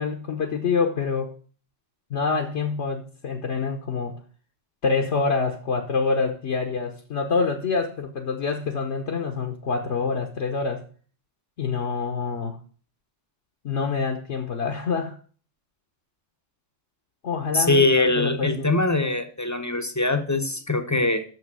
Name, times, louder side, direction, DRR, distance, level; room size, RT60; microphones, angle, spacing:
voice 1, 0.0-1.3 2.1-4.2 4.8-10.8 11.6-12.6 13.6-15.2 17.2-18.7, left 4 dB, 65° left, 3 dB, 1.3 m, -26 dB
voice 2, 17.5-21.2, left 2 dB, 15° left, 7 dB, 0.7 m, -22 dB
6.7 x 6.3 x 7.5 m, 0.42 s
omnidirectional pair, 1.3 m